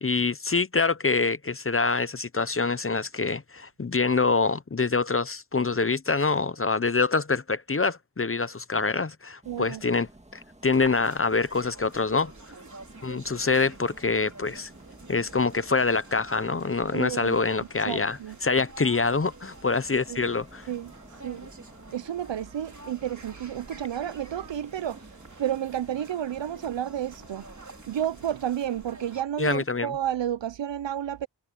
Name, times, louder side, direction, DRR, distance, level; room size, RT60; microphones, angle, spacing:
voice 1, 0.0-12.3 13.0-14.7 15.1-20.7 29.4-29.9, left 4 dB, 30° left, 0.7 m, -25 dB
sound 1, 9.4-28.2, right 1 dB, 15° right, 2.0 m, -53 dB
voice 2, 9.5-9.8 16.9-17.4 17.9-18.4 20.1-20.2 20.7-20.9 21.2-21.4 21.9-25.0 25.4-27.5 27.9-31.3, right 10 dB, 70° right, 0.6 m, -31 dB
sound 2, 10.6-29.2, right 3 dB, 40° right, 3.5 m, -48 dB
wide cardioid pair, 90°, 46 cm